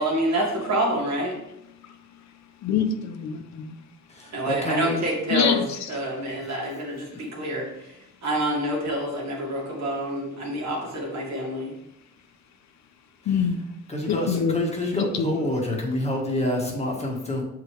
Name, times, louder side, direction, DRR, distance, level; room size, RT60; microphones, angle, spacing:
voice 1, 0.0-1.4 4.3-8.0 8.2-11.7, right 1 dB, 60° right, -3 dB, 2.5 m, -27 dB
voice 2, 2.6-3.7 5.3-5.6 13.3-13.6 14.1-14.6, left 7 dB, 65° left, 7 dB, 0.8 m, -24 dB
voice 3, 4.1-5.0 6.4-6.6 13.2-13.5 13.9-17.4, left 1 dB, 20° left, -1 dB, 1.7 m, -27 dB
6.6 x 4.8 x 3.3 m, 0.84 s
cardioid pair, 90°, 30 cm